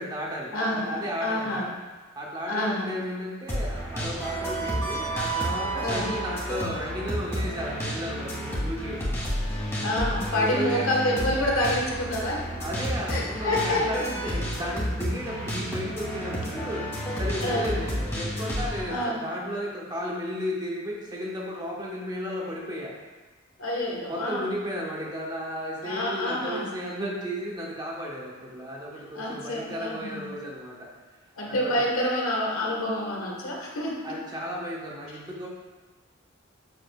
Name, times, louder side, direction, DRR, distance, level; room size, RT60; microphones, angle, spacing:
voice 1, 0.0-1.7 2.1-9.1 10.3-10.9 12.6-22.9 24.1-30.9 31.5-31.8 34.0-35.5, equal, 20° right, -3 dB, 1.2 m, -34 dB
voice 2, 0.5-1.7 2.4-3.0 5.8-6.1 9.8-12.5 13.1-13.8 14.3-14.4 17.4-17.8 18.9-19.2 23.6-24.5 25.8-26.7 29.1-30.3 31.4-34.0, left 1 dB, 85° left, -2 dB, 1.5 m, -28 dB
sound 1, 3.5-18.8, right 1 dB, 15° left, 2.2 m, -31 dB
8.0 x 6.9 x 2.4 m, 1.2 s
head